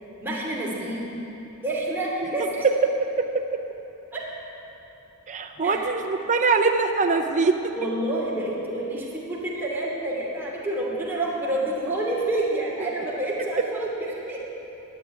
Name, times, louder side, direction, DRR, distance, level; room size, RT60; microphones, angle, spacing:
voice 1, 0.2-1.1 1.6-2.7 4.1-4.2 5.6-5.8 7.7-14.4, right 1 dB, 10° right, -5 dB, 2.8 m, -28 dB
voice 2, 5.3-7.7, right 4 dB, 35° right, 4 dB, 0.7 m, -23 dB
11.5 x 8.2 x 9.6 m, 3.0 s
head